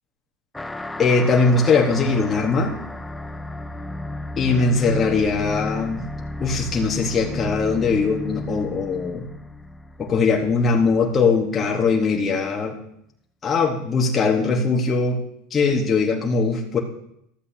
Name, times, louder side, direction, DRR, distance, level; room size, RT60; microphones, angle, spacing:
sound 1, 0.5-11.5, left 2 dB, 5° left, 0.4 m, -34 dB
voice 1, 1.0-2.7 4.4-6.0 6.4-9.2 10.0-12.7 13.4-15.2 15.5-16.8, left 4 dB, 25° left, 0 dB, 1.2 m, -20 dB
13.0 x 8.1 x 2.8 m, 0.75 s
supercardioid pair, 125°, 0 cm